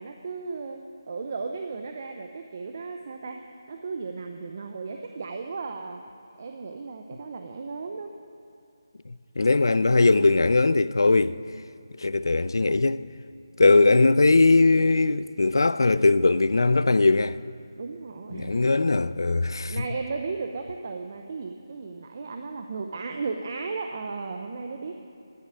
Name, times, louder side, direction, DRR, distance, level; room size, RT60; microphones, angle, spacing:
voice 1, 0.0-3.4 3.7-6.0 6.4-8.2 17.8-18.6 19.7-24.9, right 4 dB, 35° right, 0.7 m, -35 dB
voice 2, 9.1-11.4 12.0-13.0 13.6-17.4 18.3-19.8, left 3 dB, 75° left, 0.5 m, -20 dB
11.0 x 9.6 x 9.8 m
figure-of-eight pair, 170°, 2 cm